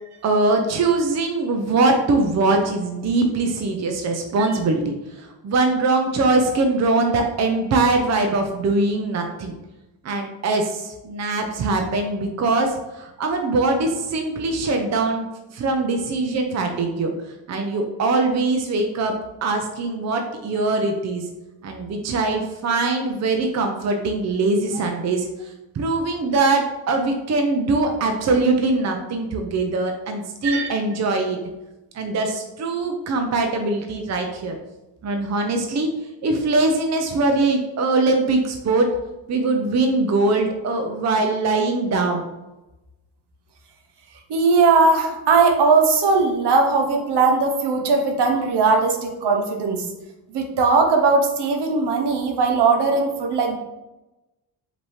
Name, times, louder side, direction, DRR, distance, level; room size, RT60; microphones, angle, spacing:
voice 1, 0.2-9.5 10.0-17.1 17.5-21.3 21.6-25.3 25.7-31.4 31.9-34.6 35.0-35.9 36.2-38.9 39.3-42.3, right 3 dB, 40° right, 4 dB, 0.6 m, -22 dB
voice 2, 30.4-30.7 44.3-49.9 50.3-53.6, right 4 dB, 70° right, 3 dB, 0.9 m, -19 dB
5.2 x 2.8 x 3.1 m, 1.0 s
cardioid pair, 95°, 42 cm